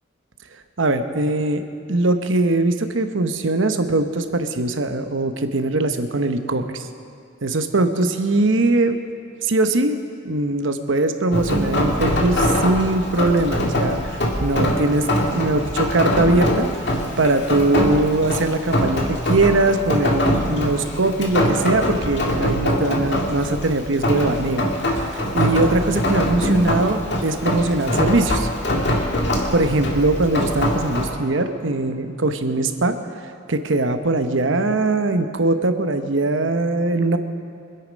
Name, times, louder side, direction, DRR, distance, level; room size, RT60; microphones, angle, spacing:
voice 1, 0.8-1.6 1.9-6.9 7.4-9.0 9.4-10.0 10.2-28.5 29.5-33.0 33.5-37.2, right 2 dB, 75° right, 8 dB, 1.0 m, -21 dB
Rain, 11.3-31.1, equal, 60° left, 2.1 m, -23 dB
25.0 x 8.6 x 5.2 m, 2.4 s
head